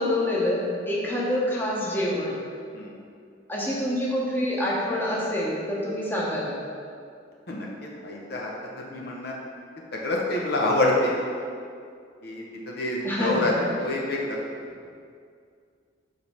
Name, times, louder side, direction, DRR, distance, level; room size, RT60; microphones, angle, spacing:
voice 1, 0.0-2.4 3.5-6.5 13.0-13.5, left 1 dB, 10° left, -5 dB, 1.1 m, -26 dB
voice 2, 7.5-8.5 8.8-9.3 9.9-11.1 12.2-13.5 13.8-14.4, left 2 dB, 55° left, -2 dB, 0.8 m, -27 dB
5.1 x 4.2 x 5.8 m, 2.2 s
head